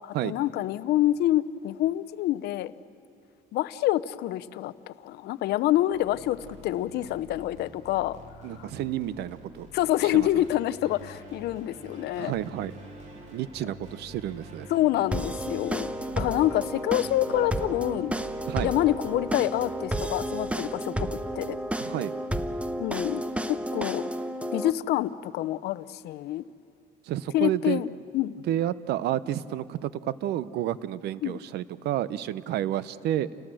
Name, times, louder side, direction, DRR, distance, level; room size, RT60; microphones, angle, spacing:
voice 1, 0.0-2.7 3.5-6.4 6.6-8.2 8.6-8.7 9.7-12.3 14.7-15.9 16.2-18.1 18.6-21.6 22.8-23.2 23.5-24.1 24.5-26.4 27.3-27.9 28.1-28.3 31.2-31.4, left 14 dB, 75° left, 16 dB, 0.7 m, -27 dB
sound 1, 5.9-20.6, equal, 45° right, 3.8 m, -47 dB
voice 2, 8.4-9.7 10.0-10.4 12.2-12.8 13.3-14.7 18.5-18.7 21.8-22.1 27.0-27.8 28.4-33.3, right 12 dB, 75° right, 17 dB, 0.7 m, -30 dB
sound 2, 15.1-24.7, right 1 dB, 5° right, 0.8 m, -32 dB
29.0 x 18.5 x 7.7 m, 2.3 s
cardioid pair, 110°, 17 cm